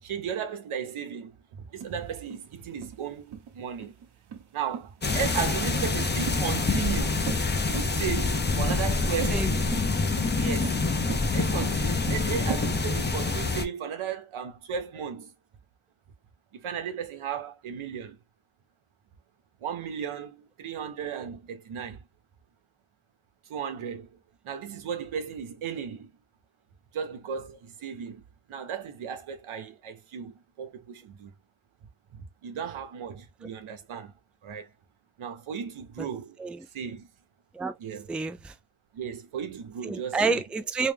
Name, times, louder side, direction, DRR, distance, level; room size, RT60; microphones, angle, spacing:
voice 1, 0.0-4.0 4.5-7.3 7.7-9.5 10.4-10.8 11.3-15.3 16.5-18.2 19.6-22.1 23.4-24.2 24.4-26.1 26.9-28.2 28.5-31.3 32.1-34.1 34.4-34.7 35.2-36.4 36.7-37.1 37.8-38.1 38.9-40.4, right 7 dB, 85° right, 1.1 m, -35 dB
sound 1, 1.8-12.7, right 7 dB, 55° right, 1.0 m, -39 dB
sound 2, 5.0-13.7, left 3 dB, 20° left, 0.7 m, -26 dB
voice 2, 38.1-38.5 39.8-40.9, right 4 dB, 5° right, 0.3 m, -29 dB
3.3 x 3.1 x 3.4 m
cardioid pair, 90°, 48 cm